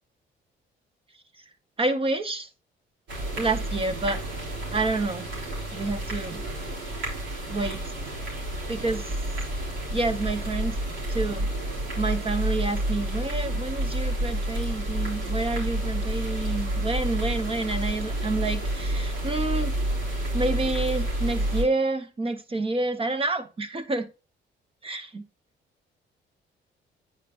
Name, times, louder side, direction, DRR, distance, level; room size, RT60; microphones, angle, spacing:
voice 1, 1.8-2.5 3.4-4.2 4.7-5.3 5.7-6.4 7.5-7.9 8.7-9.1 9.9-10.8 11.1-11.5 12.0-19.7 20.3-24.1 24.8-25.2, right 2 dB, 30° right, 9 dB, 0.9 m, -28 dB
sound 1, 3.1-21.6, right 1 dB, 70° right, 3.7 m, -29 dB
8.8 x 5.2 x 2.5 m, 0.31 s
cardioid pair, 90°, 20 cm